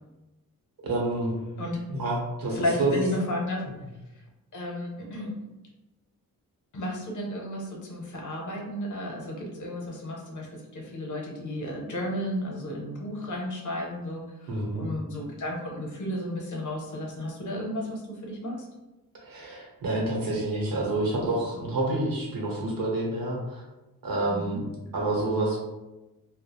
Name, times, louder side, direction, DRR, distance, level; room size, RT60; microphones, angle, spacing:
voice 1, 0.8-1.3 1.9-2.9 14.5-14.8 19.2-23.6 24.0-24.6 24.9-25.6, right 2 dB, 70° right, -2 dB, 0.9 m, -28 dB
voice 2, 2.5-3.6 4.1-4.2 4.5-5.3 6.7-18.7 24.3-24.6, left 1 dB, 60° left, -1 dB, 0.6 m, -33 dB
2.3 x 2.0 x 2.9 m, 1.0 s
wide cardioid pair, 175°, 35 cm